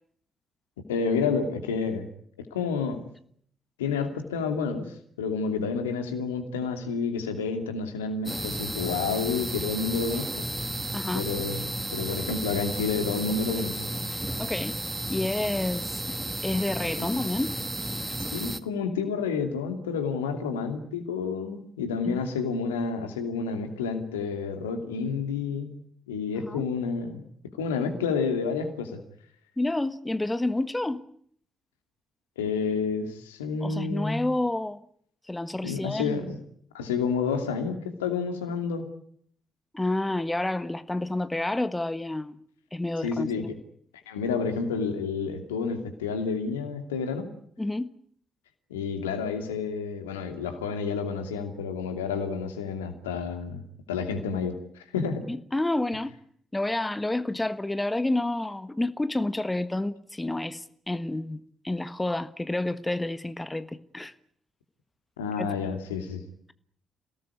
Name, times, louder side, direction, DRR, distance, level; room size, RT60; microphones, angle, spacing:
voice 1, 0.9-2.0 2.5-3.0 3.8-10.4 11.1-11.7 11.9-13.9 17.0-17.1 18.2-25.8 26.1-27.2 27.6-29.0 32.4-34.2 35.6-36.4 36.7-38.9 43.0-43.6 44.1-47.3 48.7-53.6 53.9-55.3 65.2-66.2, left 5 dB, 80° left, 2.6 m, -29 dB
sound 1, 8.3-18.6, right 1 dB, 15° right, 1.8 m, -33 dB
voice 2, 10.9-11.2 14.4-14.8 15.1-16.2 16.4-17.6 22.0-22.2 26.3-26.7 29.6-31.0 33.6-34.8 35.3-36.3 39.7-42.4 42.7-43.5 47.6-47.9 55.3-56.1 56.5-61.4 61.6-64.1 65.4-65.7, left 2 dB, 15° left, 1.5 m, -29 dB
28.0 x 18.5 x 9.8 m
figure-of-eight pair, 40°, 0 cm